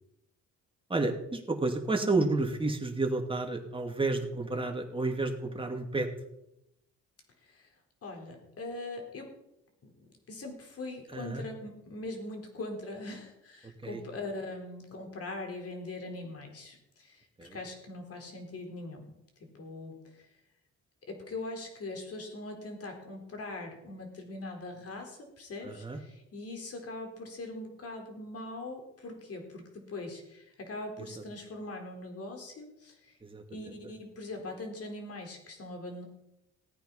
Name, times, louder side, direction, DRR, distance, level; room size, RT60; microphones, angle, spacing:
voice 1, 0.9-6.1 11.1-11.4 13.8-14.0 17.4-17.6 25.6-26.0 31.0-31.1 33.2-33.4, right 3 dB, 15° right, 3 dB, 2.6 m, -31 dB
voice 2, 8.0-9.3 9.8-9.9 10.3-19.1 19.4-20.3 21.1-33.1 33.5-36.0, left 2 dB, 50° left, 3 dB, 4.2 m, -41 dB
17.5 x 9.1 x 5.7 m, 0.85 s
cardioid pair, 90°, 30 cm